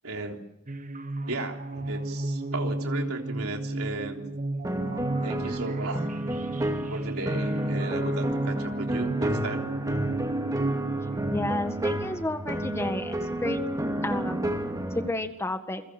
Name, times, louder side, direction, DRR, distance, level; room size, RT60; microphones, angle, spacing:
voice 1, 0.0-0.4 1.3-4.2 5.2-6.1 6.9-9.7, right 2 dB, 85° right, 2 dB, 3.6 m, -35 dB
sound 1, 0.7-11.5, right 2 dB, 35° right, 1.1 m, -32 dB
sound 2, 4.6-15.1, right 1 dB, 15° right, 2.3 m, -31 dB
voice 2, 11.3-13.6 14.0-15.8, left 1 dB, 10° left, 7 dB, 1.8 m, -32 dB
29.0 x 23.0 x 6.2 m, 0.79 s
head